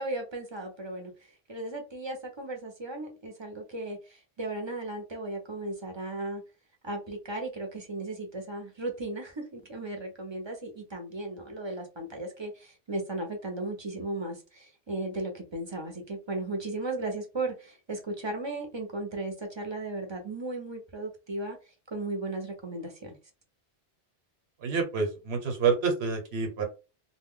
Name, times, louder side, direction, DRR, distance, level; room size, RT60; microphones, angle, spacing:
voice 1, 0.0-6.4 6.8-23.2, right 2 dB, 30° right, 0.6 m, -36 dB
voice 2, 24.6-26.6, right 5 dB, 80° right, 1.1 m, -28 dB
2.2 x 2.2 x 3.6 m
omnidirectional pair, 1.1 m